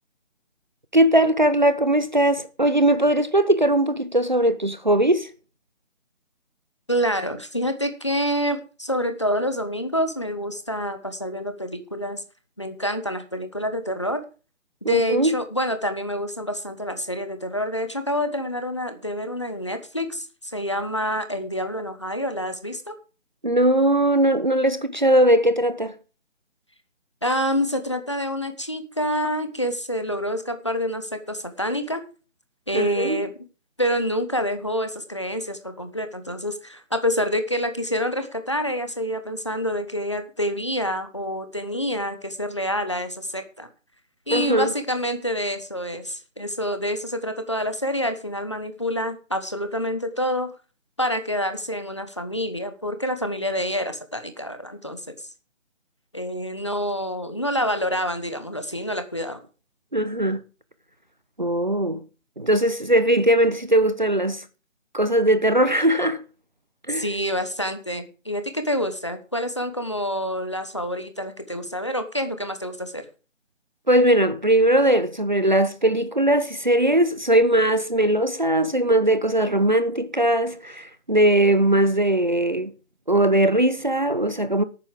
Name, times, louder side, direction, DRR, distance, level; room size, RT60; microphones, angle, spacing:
voice 1, 0.9-5.3 14.8-15.4 23.4-25.9 32.7-33.2 44.3-44.7 59.9-60.4 61.4-62.0 62.4-64.4 64.9-66.2 66.9-67.0 73.9-82.7 83.1-84.6, right 1 dB, 35° right, 0.8 m, -20 dB
voice 2, 6.9-12.2 12.6-14.2 14.9-22.9 27.2-32.0 32.7-33.3 33.8-43.7 44.3-50.5 51.0-55.2 56.1-59.4 66.9-73.1, equal, 25° left, 1.1 m, -27 dB
12.0 x 9.1 x 5.0 m
figure-of-eight pair, 180°, 38 cm